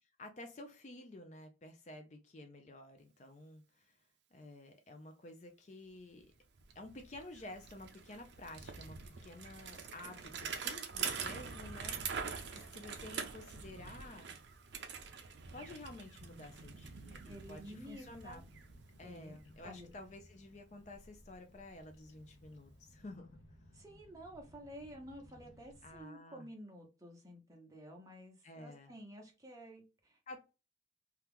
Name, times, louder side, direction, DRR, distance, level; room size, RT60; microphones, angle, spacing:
voice 1, 0.2-4.0 4.3-6.3 6.7-14.3 15.5-18.4 19.0-23.4 25.8-26.5 28.4-28.9 30.3-30.4, left 2 dB, 35° left, 0.4 m, -51 dB
Bicycle, 6.2-6.3 6.6-19.5, right 6 dB, 60° right, 0.5 m, -45 dB
Bird vocalization bird call bird song, 16.2-26.0, equal, 80° left, 0.8 m, -61 dB
voice 2, 17.3-18.4 19.0-19.4 19.6-19.9 23.7-30.4, equal, 15° right, 0.9 m, -52 dB
2.9 x 2.3 x 3.4 m
head